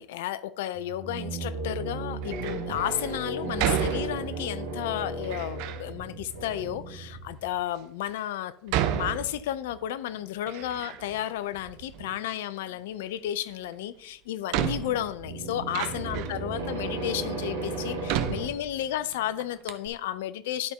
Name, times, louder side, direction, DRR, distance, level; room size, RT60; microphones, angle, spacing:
voice 1, 0.0-20.7, left 12 dB, 70° left, 0.4 m, -33 dB
sound 1, 0.7-7.5 15.1-18.5, right 2 dB, 85° right, 1.2 m, -35 dB
Door, 2.2-2.7 3.6-4.6 5.2-5.9 6.6-6.7 7.4-7.5 8.7-9.8 10.2-11.2 11.5-12.4 13.7-13.8 14.5-16.5 17.1-17.2 18.1-19.1 19.4-19.5 19.7-19.9, right 11 dB, 65° right, 0.6 m, -32 dB
11.5 x 4.2 x 3.5 m
hypercardioid pair, 75°, 0 cm